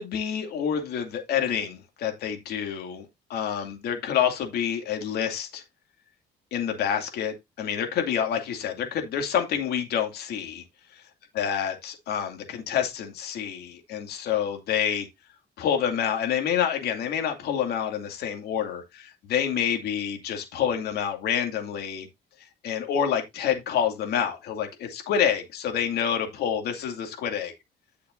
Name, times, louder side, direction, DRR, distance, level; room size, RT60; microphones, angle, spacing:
voice 1, 0.0-5.6 6.5-10.6 11.0-11.1 11.3-15.1 15.6-22.1 22.4-27.5, left 8 dB, 70° left, 2.5 m, -28 dB
11.0 x 6.5 x 2.6 m
cardioid pair, 110°, 17 cm